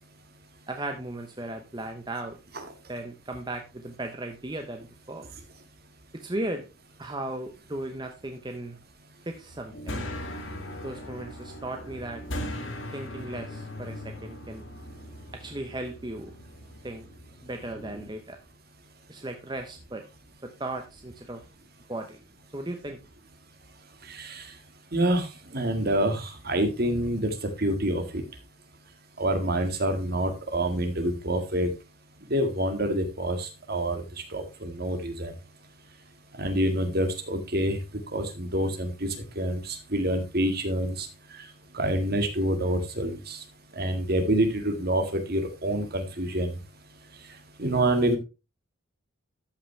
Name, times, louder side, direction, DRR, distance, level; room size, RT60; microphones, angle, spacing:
voice 1, 0.7-2.4 2.9-5.3 6.1-6.7 7.0-8.8 9.3-9.9 10.8-12.2 12.9-14.7 15.3-16.3 16.8-17.1 17.4-18.4 19.1-20.0 20.4-21.4 21.9-22.2 22.5-23.0, right 1 dB, 20° right, 4 dB, 0.8 m, -36 dB
sound 1, 9.5-18.1, left 1 dB, 65° left, 1.7 m, -39 dB
voice 2, 24.1-24.5 24.9-25.3 25.5-28.2 29.2-31.7 32.3-34.0 34.3-35.3 36.4-37.8 38.1-39.1 39.4-41.1 41.7-43.4 43.8-46.5 47.6-48.2, right 1 dB, 50° right, 6 dB, 1.8 m, -27 dB
13.0 x 5.7 x 3.3 m, 0.28 s
head